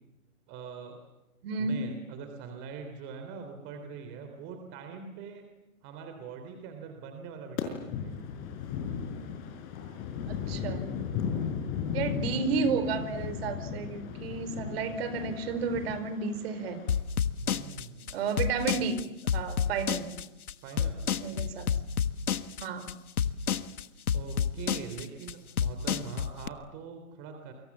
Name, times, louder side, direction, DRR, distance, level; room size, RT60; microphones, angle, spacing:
voice 1, 0.5-1.0 1.6-5.4 5.8-8.3 11.3-11.8 17.4-18.2 20.6-21.0 24.1-27.5, right 5 dB, 25° right, 5 dB, 3.5 m, -43 dB
voice 2, 1.4-1.8 10.3-10.8 11.9-16.8 18.1-19.0 19.3-20.1 21.2-21.7 22.6-22.9, right 5 dB, 45° right, 11 dB, 4.6 m, -32 dB
sound 1, 7.6-16.9, left 7 dB, 30° left, 5.5 m, -36 dB
sound 2, 16.9-26.5, left 8 dB, 90° left, 1.6 m, -29 dB
29.0 x 25.5 x 7.3 m, 0.98 s
hypercardioid pair, 150°, 42 cm